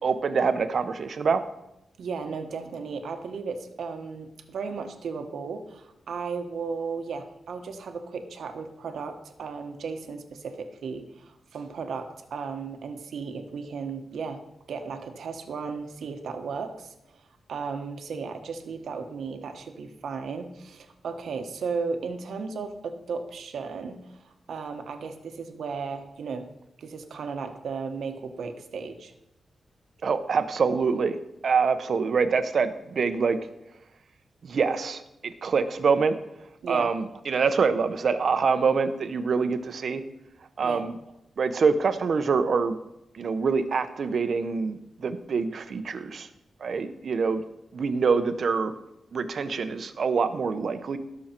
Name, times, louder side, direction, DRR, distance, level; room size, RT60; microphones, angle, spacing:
voice 1, 0.0-1.4 30.0-31.2 31.4-33.4 34.4-36.2 36.7-40.0 40.6-40.9 41.4-42.8 43.1-46.3 46.6-47.4 47.7-48.7 49.1-51.0, right 5 dB, 60° right, 10 dB, 0.8 m, -25 dB
voice 2, 2.0-14.4 14.7-17.2 17.5-26.5 26.8-29.1 36.6-36.9 40.6-40.8, right 5 dB, 80° right, 6 dB, 1.2 m, -35 dB
18.0 x 6.4 x 4.4 m, 0.87 s
wide cardioid pair, 105°, 0 cm